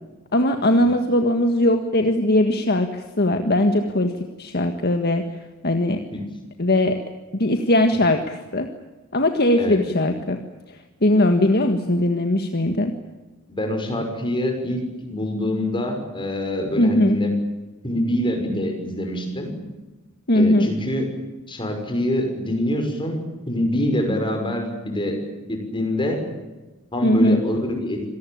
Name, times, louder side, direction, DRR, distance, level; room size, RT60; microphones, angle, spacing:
voice 1, 0.3-5.2 5.6-6.0 6.6-7.0 7.3-8.7 9.1-10.4 10.7-12.9 16.8-17.2 20.3-20.7 27.0-27.4, left 1 dB, 45° left, 5 dB, 1.7 m, -20 dB
voice 2, 13.5-14.8 15.1-17.3 17.8-19.5 20.3-21.1 21.5-23.2 23.5-25.2 25.5-26.2 26.9-28.0, left 1 dB, 20° left, 4 dB, 6.0 m, -25 dB
26.5 x 19.0 x 8.8 m, 1.2 s
head